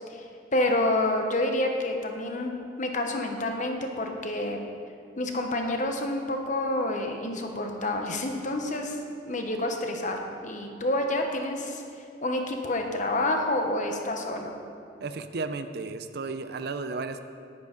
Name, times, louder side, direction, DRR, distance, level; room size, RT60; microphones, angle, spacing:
voice 1, 0.1-2.5 2.8-4.6 5.2-9.0 9.3-11.8 12.2-14.5, left 1 dB, 40° left, 3 dB, 1.0 m, -28 dB
voice 2, 15.0-17.3, right 3 dB, 55° right, 9 dB, 0.5 m, -34 dB
9.7 x 9.7 x 5.3 m, 2.4 s
head